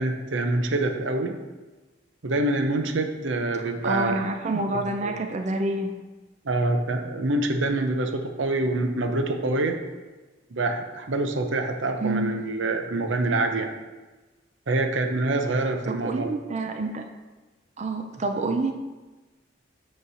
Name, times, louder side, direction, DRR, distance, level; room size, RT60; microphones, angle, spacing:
voice 1, 0.0-1.4 2.2-4.2 5.0-5.1 6.4-9.8 10.5-13.7 14.7-16.3, right 2 dB, 85° right, 5 dB, 0.7 m, -26 dB
voice 2, 3.6-5.9 12.0-12.4 15.9-17.1 17.8-18.7, right 2 dB, 40° right, 4 dB, 0.5 m, -28 dB
8.1 x 3.2 x 5.6 m, 1.2 s
head